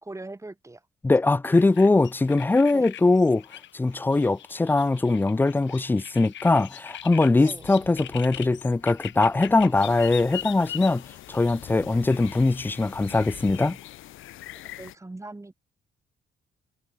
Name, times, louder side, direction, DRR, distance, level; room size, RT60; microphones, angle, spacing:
voice 1, 0.0-0.9 2.7-2.9 7.4-7.7 14.8-15.5, right 2 dB, 15° right, 3.1 m, -40 dB
voice 2, 1.0-3.4 3.7-11.0 11.3-13.8, left 3 dB, 10° left, 0.4 m, -21 dB
sound 1, 1.4-13.7, left 12 dB, 70° left, 1.4 m, -42 dB
sound 2, 9.7-15.0, left 15 dB, 85° left, 2.0 m, -45 dB
cardioid pair, 90°, 20 cm